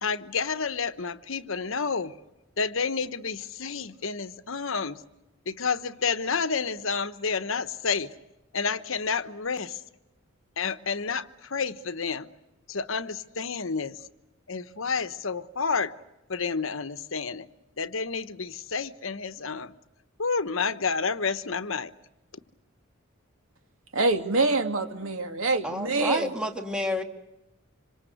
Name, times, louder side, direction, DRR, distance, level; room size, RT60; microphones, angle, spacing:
voice 1, 0.0-2.1 2.6-5.0 5.5-8.1 8.5-9.8 10.6-12.3 12.7-14.0 14.5-15.9 16.3-17.5 17.8-19.7 20.2-21.9, left 5 dB, 70° left, 1.1 m, -30 dB
voice 2, 23.9-26.3, right 3 dB, 80° right, 2.6 m, -25 dB
voice 3, 25.6-27.0, left 1 dB, 5° right, 2.2 m, -29 dB
27.0 x 25.5 x 8.0 m
head